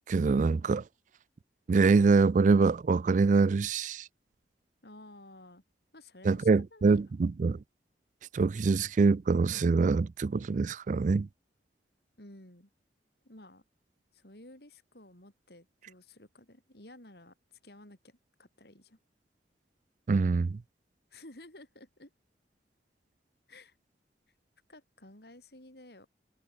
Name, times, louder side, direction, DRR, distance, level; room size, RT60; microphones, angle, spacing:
voice 1, 0.1-0.8 1.7-4.1 6.2-7.6 8.3-11.3 20.1-20.6, right 4 dB, 45° right, 0.4 m, -25 dB
voice 2, 4.8-5.6 5.9-7.0 12.2-12.7 13.2-13.6 14.1-17.3 17.6-19.0 21.1-22.1 23.5-23.8 24.7-26.1, left 1 dB, 60° left, 5.3 m, -53 dB
head